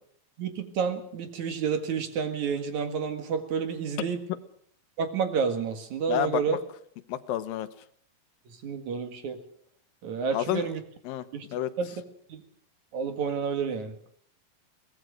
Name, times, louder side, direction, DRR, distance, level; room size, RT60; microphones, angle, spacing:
voice 1, 0.4-4.2 5.0-6.6 8.6-9.4 10.0-10.8 11.3-11.5 11.8-11.9 12.3-12.4 12.9-14.0, right 6 dB, 60° right, 7 dB, 3.1 m, -30 dB
voice 2, 6.1-6.6 7.1-7.7 10.3-10.7 11.0-11.2 11.5-11.7, left 12 dB, 90° left, 12 dB, 2.8 m, -29 dB
23.0 x 19.0 x 6.4 m, 0.62 s
omnidirectional pair, 4.0 m